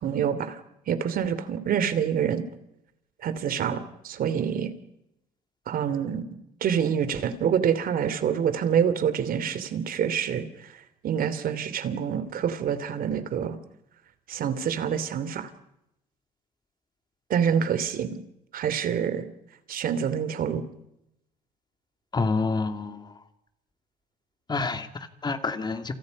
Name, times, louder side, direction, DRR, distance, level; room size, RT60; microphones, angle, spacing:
voice 1, 0.0-0.6 0.9-2.4 3.2-4.7 5.7-6.3 6.6-10.7 11.0-13.6 14.3-15.5 17.3-18.1 18.5-19.3 19.7-20.6, right 8 dB, 60° right, 12 dB, 3.0 m, -26 dB
voice 2, 22.1-23.2 24.5-25.9, left 4 dB, 25° left, 7 dB, 2.7 m, -28 dB
28.5 x 28.5 x 5.5 m, 0.85 s
cardioid pair, 110°, 17 cm